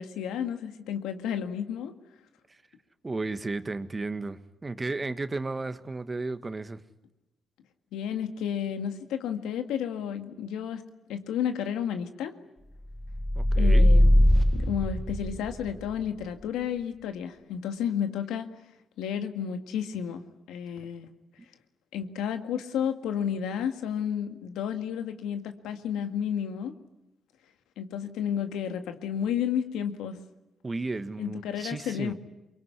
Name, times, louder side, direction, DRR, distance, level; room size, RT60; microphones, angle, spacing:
voice 1, 0.0-1.9 7.9-10.8 11.1-12.3 13.6-14.2 14.5-18.5 19.0-20.2 20.5-21.1 21.9-26.7 27.8-30.2 31.2-32.1, left 8 dB, 85° left, 1.9 m, -32 dB
voice 2, 3.0-6.8 13.3-13.9 21.4-21.5 30.6-32.1, right 3 dB, 30° right, 1.7 m, -34 dB
sound 1, 13.0-15.7, left 1 dB, 5° right, 1.4 m, -20 dB
24.0 x 22.5 x 9.8 m
supercardioid pair, 60°, 0 cm